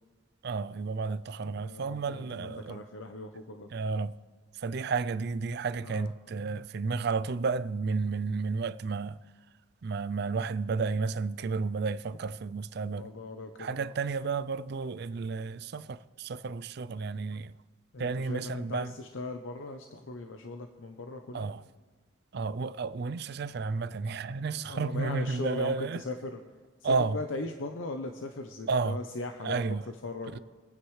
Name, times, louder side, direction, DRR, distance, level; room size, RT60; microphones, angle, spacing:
voice 1, 0.4-2.8 3.7-4.1 4.6-9.2 9.8-13.1 13.6-17.5 18.0-18.9 21.3-21.6 22.3-26.0 26.8-27.2 28.7-29.0 29.4-29.8, right 4 dB, 55° right, 0.4 m, -32 dB
voice 2, 1.4-3.7 5.8-6.1 12.8-13.9 17.9-21.5 24.5-26.4 26.8-29.8 30.0-30.4, left 2 dB, 90° left, 0.8 m, -39 dB
25.0 x 9.4 x 3.2 m
head